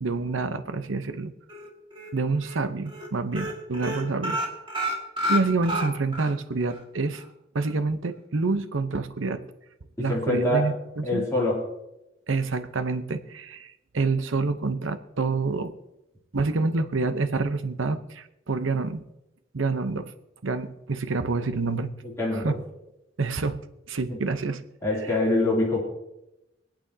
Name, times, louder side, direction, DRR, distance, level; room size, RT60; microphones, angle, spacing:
voice 1, 0.0-1.3 2.1-4.4 5.3-7.2 7.5-9.4 10.0-11.2 12.3-15.7 16.3-19.0 19.5-20.1 20.4-21.9 22.3-22.5 23.2-23.6 23.9-24.6, right 3 dB, 90° right, 10 dB, 0.8 m, -27 dB
sound 1, 1.5-2.1 2.4-2.6 2.9-3.1 3.3-6.3 6.7-6.8 7.1-7.2, equal, 25° right, 1.9 m, -29 dB
voice 2, 10.0-10.7 11.0-11.7 22.0-22.6 24.1-24.2 24.8-25.8, left 1 dB, 15° left, -6 dB, 2.8 m, -25 dB
26.0 x 8.9 x 2.8 m, 0.91 s
head